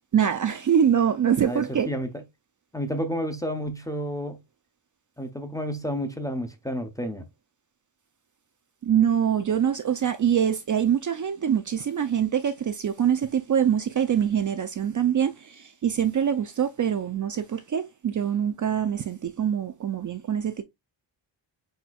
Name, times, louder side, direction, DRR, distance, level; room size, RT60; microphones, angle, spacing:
voice 1, 0.1-1.9 8.8-20.6, right 8 dB, 45° right, 0.5 m, -24 dB
voice 2, 1.4-2.1 2.7-4.4 5.2-7.3, equal, 5° left, 0.6 m, -30 dB
5.2 x 4.3 x 2.3 m
wide cardioid pair, 170°, 46 cm